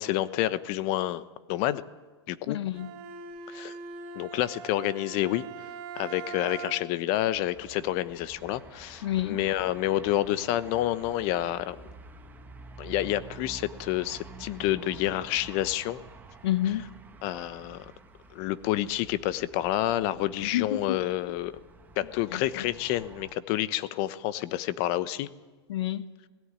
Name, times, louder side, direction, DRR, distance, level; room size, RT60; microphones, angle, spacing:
voice 1, 0.0-1.8 2.3-2.6 3.5-3.7 4.1-5.4 5.9-11.8 12.8-16.0 17.2-17.9 18.3-21.5 22.0-25.3, left 14 dB, 45° left, 1.0 m, -29 dB
voice 2, 2.5-2.9 9.0-9.4 16.4-16.9 20.4-21.0 22.3-22.6 25.7-26.1, left 13 dB, 70° left, 1.3 m, -29 dB
Bowed string instrument, 2.7-7.1, right 5 dB, 45° right, 2.8 m, -41 dB
sound 1, 7.3-23.3, right 4 dB, 10° right, 1.7 m, -49 dB
18.0 x 16.5 x 9.8 m
hypercardioid pair, 130°, 14 cm